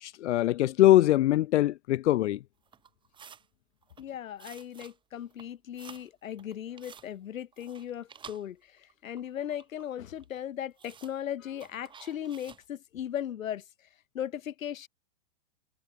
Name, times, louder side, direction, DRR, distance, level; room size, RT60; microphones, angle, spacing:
voice 1, 0.0-2.4, left 14 dB, 60° left, 0.5 m, -22 dB
sound 1, 2.7-3.5 3.8-4.1 4.4-5.0 5.2-6.1 6.4-7.1 7.5-8.9 9.2-9.9 10.2-10.3 10.8-11.2 11.6-12.6, right 7 dB, 10° right, 4.4 m, -51 dB
voice 2, 4.0-13.6 14.1-14.9, left 10 dB, 85° left, 1.8 m, -37 dB
hypercardioid pair, 160°, 39 cm